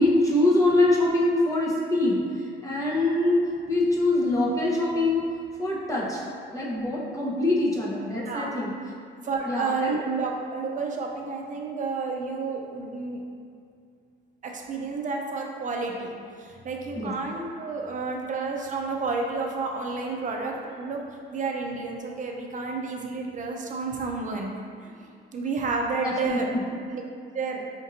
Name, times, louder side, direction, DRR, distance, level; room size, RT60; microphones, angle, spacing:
voice 1, 0.0-5.3 5.6-6.2 6.5-8.7 9.4-10.0 16.9-17.1 26.0-26.6, left 2 dB, 15° left, -5 dB, 0.8 m, -24 dB
voice 2, 9.2-13.2 14.4-24.5 24.8-26.5 26.9-27.0 27.3-27.7, right 4 dB, 40° right, 1 dB, 0.5 m, -31 dB
5.2 x 2.6 x 2.6 m, 2.3 s
cardioid pair, 90°, 20 cm